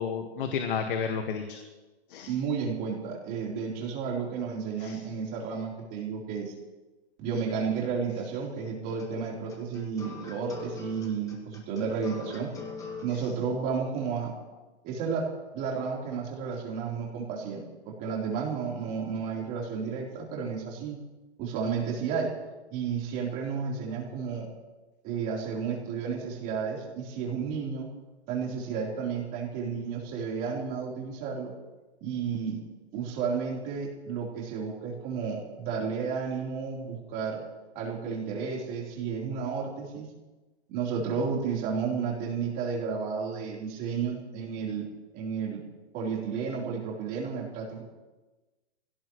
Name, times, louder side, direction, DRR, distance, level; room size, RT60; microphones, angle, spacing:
voice 1, 0.0-1.6 2.1-2.3 4.8-5.0 13.1-13.2, left 6 dB, 50° left, 5 dB, 1.7 m, -31 dB
voice 2, 2.3-6.5 7.2-12.5 13.0-14.3 14.8-15.3 15.5-21.0 21.4-22.3 22.7-24.5 25.0-27.9 28.3-31.5 32.0-32.6 32.9-37.4 37.7-40.1 40.7-44.9 45.1-45.6 45.9-47.8, right 6 dB, 25° right, -2 dB, 3.8 m, -32 dB
sound 1, 8.9-13.1, left 4 dB, 10° left, 1.7 m, -42 dB
24.0 x 17.5 x 3.2 m, 1.2 s
hypercardioid pair, 160°, 33 cm